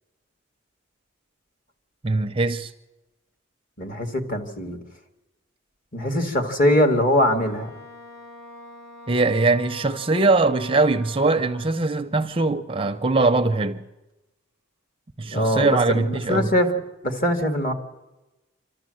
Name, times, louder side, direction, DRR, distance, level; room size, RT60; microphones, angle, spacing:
voice 1, 2.0-2.7 9.1-13.8 15.2-16.5, right 3 dB, 25° right, 0.6 m, -21 dB
voice 2, 3.8-4.8 5.9-7.7 15.3-16.7 17.0-17.7, left 1 dB, 40° left, 2.1 m, -22 dB
Wind instrument woodwind instrument, 7.3-11.9, left 2 dB, 70° left, 3.6 m, -44 dB
26.5 x 13.0 x 7.7 m
head